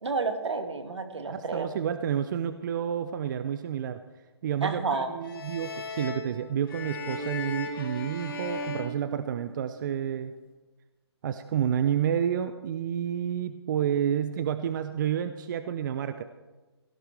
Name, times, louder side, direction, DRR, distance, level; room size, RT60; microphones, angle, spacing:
voice 1, 0.0-1.7 4.6-5.1, right 4 dB, 80° right, 7 dB, 1.9 m, -30 dB
voice 2, 1.3-4.0 4.4-10.3 11.2-16.2, right 9 dB, 45° right, 10 dB, 0.6 m, -30 dB
sound 1, 5.2-9.8, left 2 dB, 50° left, 2.7 m, -37 dB
17.5 x 14.0 x 3.5 m, 1.2 s
hypercardioid pair, 150°, 14 cm